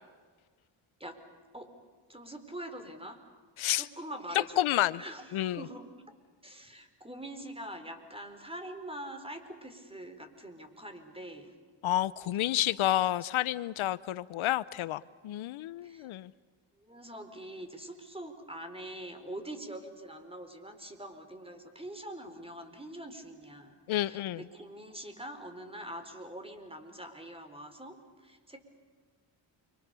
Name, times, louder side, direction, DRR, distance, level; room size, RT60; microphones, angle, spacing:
voice 1, 2.1-3.2 3.8-6.2 6.4-11.5 15.8-16.1 16.8-28.0 28.2-28.6, right 1 dB, 10° right, 7 dB, 4.5 m, -44 dB
voice 2, 4.6-5.0 5.3-5.6 11.8-16.3 23.9-24.4, left 13 dB, 80° left, 18 dB, 0.8 m, -30 dB
29.5 x 25.0 x 7.0 m, 1.5 s
cardioid pair, 85°, 47 cm